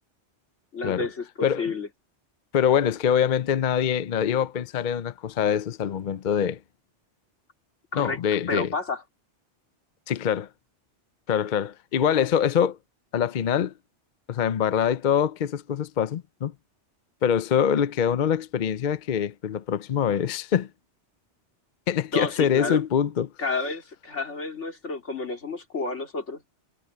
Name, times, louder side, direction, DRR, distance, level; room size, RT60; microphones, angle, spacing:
voice 1, 0.7-1.9 7.9-8.2 8.5-9.0 22.1-22.8 23.4-26.4, left 3 dB, 85° left, 3.2 m, -30 dB
voice 2, 1.4-1.7 2.5-6.6 7.9-8.7 10.1-10.5 11.3-12.8 13.1-13.7 14.3-16.5 17.2-20.7 21.9-23.3, left 8 dB, 50° left, 0.7 m, -24 dB
omnidirectional pair, 1.2 m